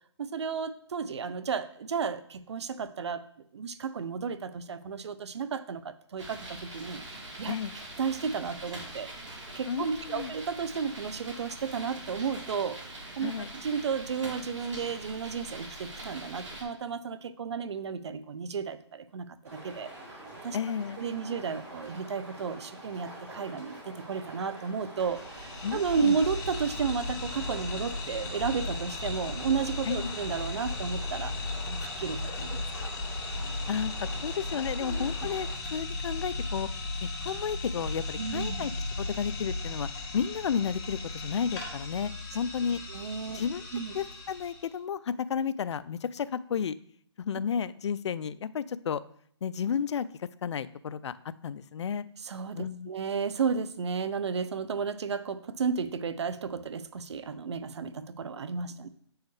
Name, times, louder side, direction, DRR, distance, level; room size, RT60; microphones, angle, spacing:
voice 1, 0.2-3.2 3.5-7.5 8.0-9.1 9.5-19.2 19.5-19.9 20.4-20.6 21.0-32.9 34.8-35.1 38.2-38.7 42.9-43.4 43.7-43.9 52.2-58.9, right 6 dB, 70° right, 15 dB, 0.6 m, -33 dB
sound 1, 6.2-16.6, right 1 dB, 90° right, 2.5 m, -43 dB
voice 2, 9.7-10.3 13.2-13.5 20.5-21.0 25.6-26.2 29.8-30.1 33.7-36.7 37.0-38.7 39.0-39.9 40.1-42.8 43.3-43.7 43.9-46.7 47.2-49.0 49.4-51.1 51.4-52.0 52.5-52.9, left 7 dB, 70° left, 17 dB, 0.4 m, -32 dB
sound 2, 19.4-35.5, right 1 dB, 15° right, 3.0 m, -46 dB
sound 3, 25.0-44.7, left 2 dB, 40° left, 1.6 m, -36 dB
8.0 x 4.7 x 3.2 m, 0.65 s
hypercardioid pair, 150°, 15 cm